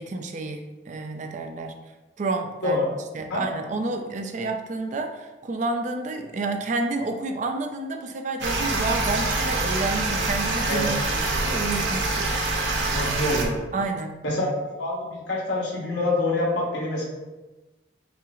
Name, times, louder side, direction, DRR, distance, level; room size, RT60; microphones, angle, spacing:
voice 1, 0.0-1.7 2.2-2.9 3.1-12.3 13.7-14.2, right 3 dB, 40° right, 5 dB, 0.3 m, -30 dB
sound 1, 8.4-13.5, right 2 dB, 65° right, 0.7 m, -25 dB
voice 2, 12.9-13.6 14.2-14.5 14.8-17.1, left 2 dB, 65° left, -4 dB, 1.2 m, -26 dB
5.5 x 2.0 x 3.7 m, 1.1 s
head